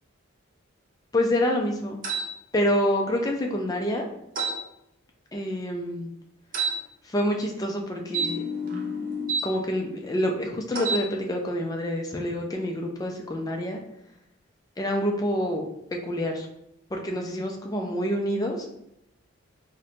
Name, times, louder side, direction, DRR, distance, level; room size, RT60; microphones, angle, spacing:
voice 1, 1.1-2.0 2.5-4.1 5.3-6.1 7.0-8.4 9.4-13.8 14.8-15.7 16.0-16.5 16.9-18.7, equal, 15° left, 1 dB, 0.3 m, -27 dB
sound 1, 2.0-2.3 4.4-4.6 6.5-6.8 8.1-9.5 10.7-11.1, right 2 dB, 40° right, 0.5 m, -28 dB
4.2 x 2.1 x 2.5 m, 0.81 s
head